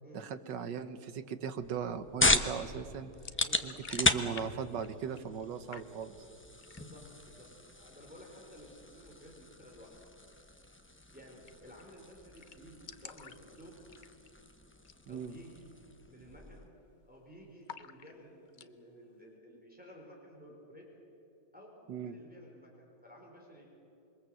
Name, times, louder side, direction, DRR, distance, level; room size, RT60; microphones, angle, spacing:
voice 1, 0.1-3.1 3.6-6.2 15.1-15.4 21.9-22.2, right 7 dB, 85° right, 11 dB, 1.7 m, -38 dB
sound 1, 1.6-16.7, left 2 dB, 15° left, 0.5 m, -37 dB
sound 2, 3.1-4.5 4.7-5.4 5.7-6.3 6.6-7.1 7.5-7.6 7.9-8.5 10.2-10.4 10.7-10.8 11.0-11.1 11.5-11.8 12.1-12.2 12.4-14.4 14.8-15.0 15.4-15.5 16.0-16.3 16.6-17.2 17.6-18.7, left 7 dB, 65° left, 0.4 m, -51 dB
voice 2, 6.7-9.9 11.0-13.7 15.1-15.7 16.1-16.7 17.0-20.8 21.5-23.7, equal, 5° right, -2 dB, 4.5 m, -54 dB
27.0 x 22.0 x 7.8 m, 2.9 s
omnidirectional pair, 1.9 m